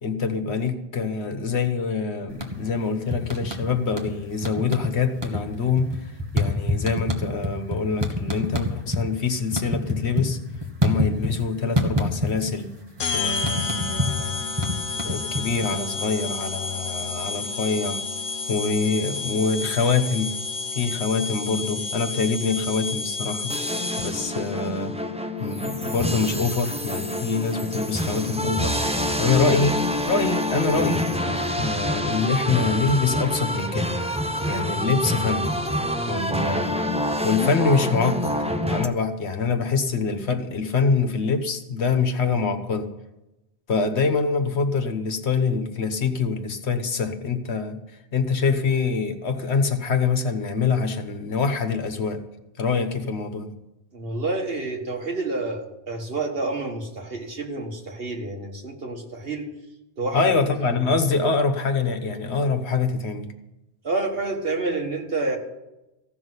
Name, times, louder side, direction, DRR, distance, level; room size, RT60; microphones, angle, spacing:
voice 1, 0.0-10.4 10.8-12.7 13.1-14.5 14.9-18.0 18.5-20.3 20.7-23.6 24.0-25.0 25.4-28.7 29.2-31.1 31.6-33.9 34.5-35.5 36.1-36.8 37.2-38.4 38.6-42.9 43.7-47.8 48.1-52.2 52.6-53.5 60.1-63.3, left 4 dB, 80° left, 7 dB, 1.4 m, -25 dB
sound 1, 2.3-2.8 3.1-4.1 4.4-4.9 5.2-9.0 9.3-11.4 11.8-12.6 12.9-15.8, left 1 dB, 25° right, 1.5 m, -25 dB
sound 2, 13.0-24.4, left 4 dB, 55° left, 0.9 m, -30 dB
sound 3, 23.5-38.9, left 1 dB, 5° right, 0.7 m, -26 dB
voice 2, 53.9-59.5 60.0-60.3 63.8-65.4, right 2 dB, 60° right, 2 dB, 2.0 m, -28 dB
15.5 x 6.2 x 9.7 m, 0.96 s
omnidirectional pair, 1.1 m